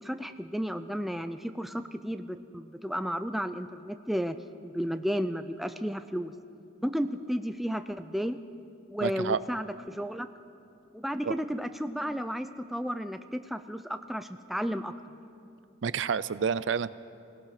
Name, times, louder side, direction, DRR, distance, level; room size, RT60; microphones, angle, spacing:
voice 1, 0.0-4.4 4.6-6.3 6.8-8.4 8.9-10.3 10.9-14.9, equal, ahead, 9 dB, 0.5 m, -33 dB
voice 2, 9.0-9.4 11.3-11.4 15.8-16.9, right 6 dB, 65° right, 17 dB, 0.5 m, -29 dB
26.0 x 17.0 x 5.9 m, 2.7 s
head